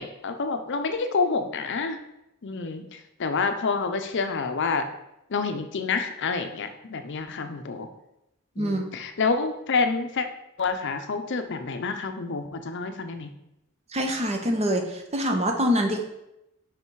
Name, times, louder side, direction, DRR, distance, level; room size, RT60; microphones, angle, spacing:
voice 1, 0.0-2.0 2.4-4.8 5.3-7.9 8.6-10.3 10.6-13.3, left 4 dB, 55° left, 7 dB, 0.6 m, -28 dB
voice 2, 13.9-16.0, equal, 30° right, 4 dB, 0.8 m, -25 dB
5.6 x 5.1 x 4.6 m, 0.86 s
head